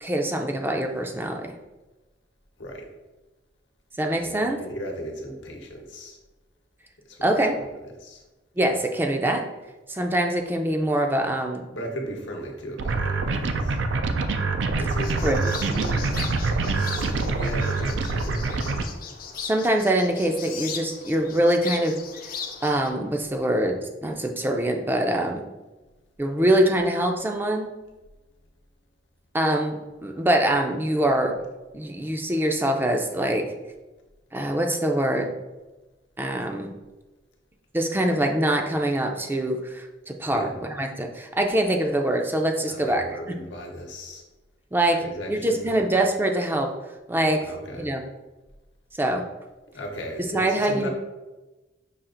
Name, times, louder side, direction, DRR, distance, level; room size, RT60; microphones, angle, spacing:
voice 1, 0.0-1.5 4.0-4.6 7.2-7.6 8.6-9.4 9.9-11.6 15.2-15.5 19.5-22.0 22.2-22.3 22.6-25.4 26.2-27.7 29.3-31.3 31.7-33.5 34.3-35.3 36.2-36.7 37.7-43.0 44.7-45.0 45.3-46.7 47.1-47.4 47.7-48.0 49.0-49.2 50.3-50.9, right 1 dB, 10° right, 3 dB, 0.4 m, -24 dB
voice 2, 2.6-2.9 4.2-6.2 7.1-7.6 8.0-8.2 11.7-13.8 14.7-16.0 16.9-18.8 40.3-40.6 42.7-44.2 45.0-45.7 47.4-47.9 49.7-50.9, equal, 90° left, 1 dB, 0.9 m, -36 dB
sound 1, 12.8-18.8, right 3 dB, 85° right, 0.4 m, -25 dB
sound 2, 14.9-22.9, left 6 dB, 50° left, 0.5 m, -38 dB
5.6 x 2.4 x 3.8 m, 1.1 s
head